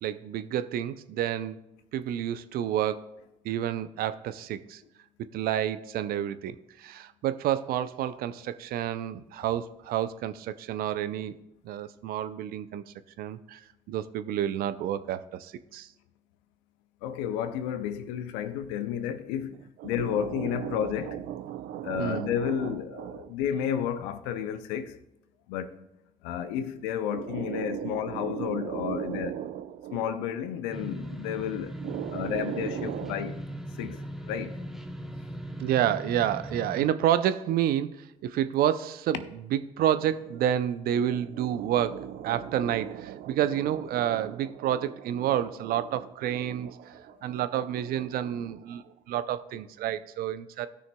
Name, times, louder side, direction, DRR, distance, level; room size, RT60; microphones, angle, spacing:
voice 1, 0.0-1.6 1.9-3.1 3.4-4.8 5.3-11.4 11.6-15.9 19.8-23.3 27.1-30.1 31.8-33.2 35.6-39.2 39.5-50.7, right 11 dB, 65° right, 0.5 m, -30 dB
voice 2, 17.0-19.5 19.8-21.2 21.8-25.0 25.5-25.8 26.2-29.4 29.9-31.8 32.1-33.4 33.8-34.0 34.3-34.6, left 9 dB, 85° left, 0.6 m, -31 dB
sound 1, 30.7-36.9, equal, ahead, 0.8 m, -39 dB
16.5 x 6.2 x 2.3 m
hypercardioid pair, 55°, 16 cm